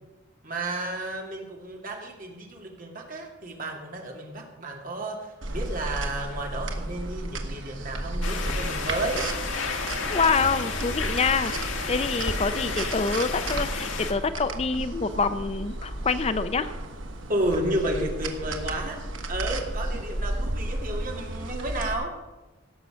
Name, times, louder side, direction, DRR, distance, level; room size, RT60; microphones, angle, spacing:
voice 1, 0.4-9.3 17.3-19.0 19.3-22.1, right 1 dB, 45° right, 1 dB, 2.5 m, -32 dB
sound 1, 5.4-21.9, right 1 dB, 85° right, 1.5 m, -33 dB
sound 2, 8.2-14.1, left 4 dB, 85° left, 1.8 m, -32 dB
voice 2, 10.1-11.5 11.9-16.7, left 4 dB, 30° left, 12 dB, 0.5 m, -26 dB
17.0 x 7.0 x 6.2 m, 1.1 s
head